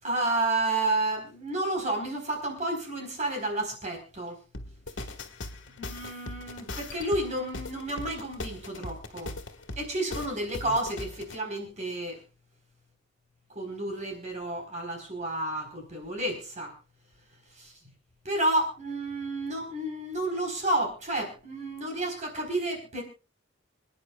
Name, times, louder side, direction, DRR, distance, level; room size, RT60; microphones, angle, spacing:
voice 1, 0.0-4.4 5.8-9.3 9.8-12.2 13.5-16.7 17.5-17.7 18.2-23.0, right 2 dB, 40° right, 3 dB, 4.1 m, -31 dB
sound 1, 4.5-11.4, left 2 dB, 75° left, 1.7 m, -40 dB
28.5 x 9.9 x 2.3 m, 0.32 s
head